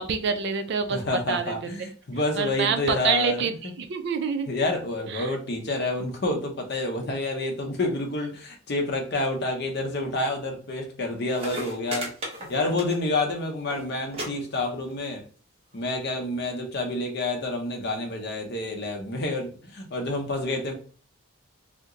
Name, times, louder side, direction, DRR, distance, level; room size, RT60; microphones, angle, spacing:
voice 1, 0.0-1.0 1.3-1.5 2.4-4.5 5.1-5.4, right 6 dB, 55° right, 8 dB, 0.4 m, -27 dB
voice 2, 0.9-3.5 4.5-12.1 12.5-15.2 15.7-20.7, left 2 dB, 50° left, 3 dB, 0.7 m, -28 dB
sound 1, 11.0-11.1 11.3-13.3 13.5-13.8 14.1-14.3 14.5-15.0 15.9-16.0, right 1 dB, 30° right, 0.7 m, -35 dB
2.8 x 2.1 x 3.6 m, 0.40 s
head